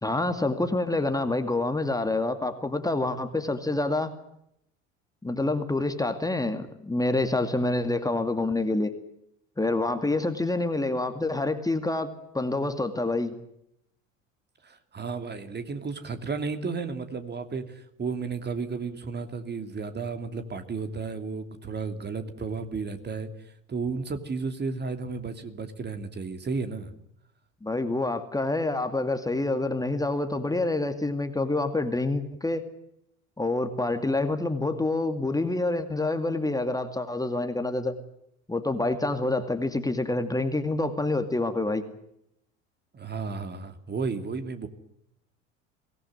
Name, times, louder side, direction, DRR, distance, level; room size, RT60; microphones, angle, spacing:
voice 1, 0.0-4.1 5.2-8.9 9.6-12.1 12.3-13.3 27.6-32.6 33.4-38.0 38.5-41.8, left 2 dB, 10° left, 8 dB, 2.3 m, -27 dB
voice 2, 14.6-23.3 23.7-26.9 42.9-44.7, right 4 dB, 25° right, 8 dB, 2.8 m, -33 dB
24.0 x 18.5 x 9.4 m, 0.79 s
figure-of-eight pair, 70°, 39 cm